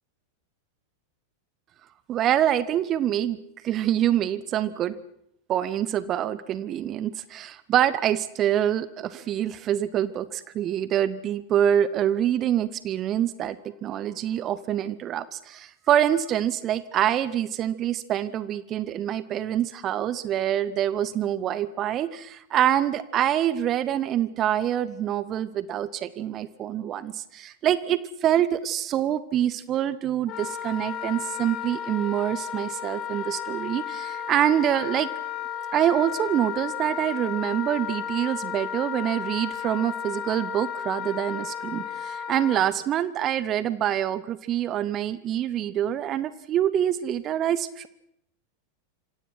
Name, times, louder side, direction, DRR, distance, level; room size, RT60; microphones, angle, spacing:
voice 1, 2.1-3.4 3.6-4.9 5.5-35.1 35.7-47.9, right 11 dB, 30° right, 16 dB, 1.0 m, -25 dB
Wind instrument woodwind instrument, 30.3-42.7, left 8 dB, 35° left, 3.0 m, -33 dB
26.5 x 26.0 x 6.0 m, 0.76 s
figure-of-eight pair, 90°, 0 cm